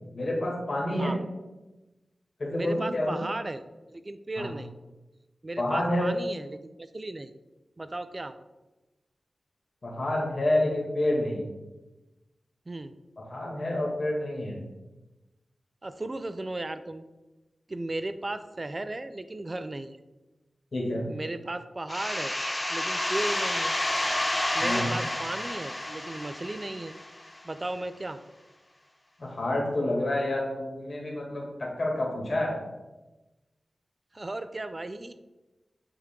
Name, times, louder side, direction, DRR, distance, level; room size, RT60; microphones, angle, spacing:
voice 1, 0.1-1.1 2.4-3.2 4.4-4.5 5.6-6.1 9.8-11.5 13.2-14.6 20.7-21.1 24.6-24.9 29.2-32.5, left 1 dB, 55° left, -2 dB, 2.1 m, -28 dB
voice 2, 2.5-3.6 3.9-4.7 5.4-7.3 7.8-8.4 12.7-12.9 15.8-17.1 17.7-20.0 21.1-22.3 22.7-23.7 24.5-26.9 27.4-28.2 34.1-35.1, right 2 dB, 30° right, 11 dB, 0.3 m, -35 dB
sound 1, 21.9-27.4, left 1 dB, 20° left, 0.8 m, -30 dB
9.1 x 3.5 x 3.7 m, 1.1 s
wide cardioid pair, 90°, 0 cm